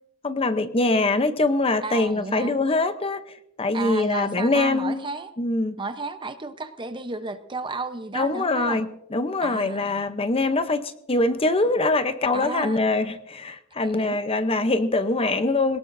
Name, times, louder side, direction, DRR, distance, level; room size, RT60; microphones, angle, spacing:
voice 1, 0.2-5.0 5.4-5.8 8.1-8.9 9.1-15.8, left 2 dB, 30° left, 10 dB, 0.7 m, -23 dB
voice 2, 1.8-2.6 3.7-5.3 5.8-8.8 9.4-10.0 12.3-12.8 13.8-14.2, right 3 dB, 25° right, 9 dB, 0.8 m, -33 dB
21.5 x 18.5 x 2.6 m, 0.79 s
head